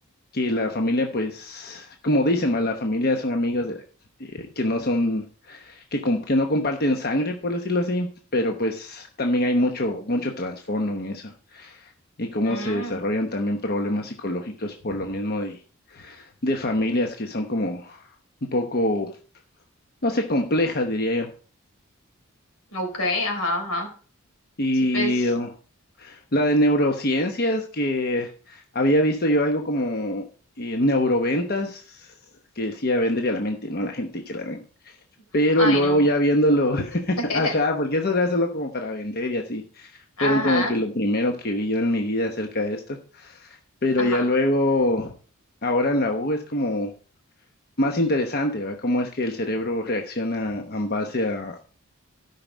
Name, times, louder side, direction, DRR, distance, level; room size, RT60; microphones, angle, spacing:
voice 1, 0.3-3.8 4.3-11.8 12.2-15.6 15.9-18.0 18.5-19.1 20.0-21.3 24.6-25.5 26.0-30.3 30.6-32.1 32.6-34.6 35.3-39.9 40.2-45.1 45.6-46.9 47.8-51.6, left 1 dB, 45° left, 4 dB, 1.0 m, -24 dB
voice 2, 12.5-13.0 22.7-23.9 24.9-25.3 35.6-36.1 37.3-37.5 40.2-40.7 44.0-44.2, left 1 dB, 85° left, 2 dB, 4.1 m, -27 dB
12.5 x 5.8 x 5.1 m, 0.41 s
head